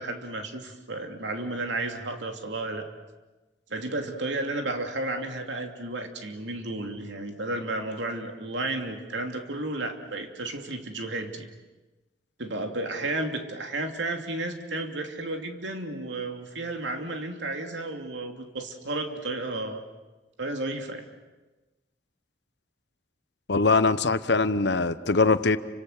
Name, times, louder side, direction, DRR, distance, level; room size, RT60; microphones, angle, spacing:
voice 1, 0.0-2.9 3.7-11.4 12.4-19.8 20.4-21.0, right 2 dB, 90° right, 4 dB, 2.8 m, -32 dB
voice 2, 23.5-25.6, left 3 dB, 70° left, 13 dB, 1.0 m, -22 dB
29.5 x 25.5 x 6.7 m, 1.1 s
head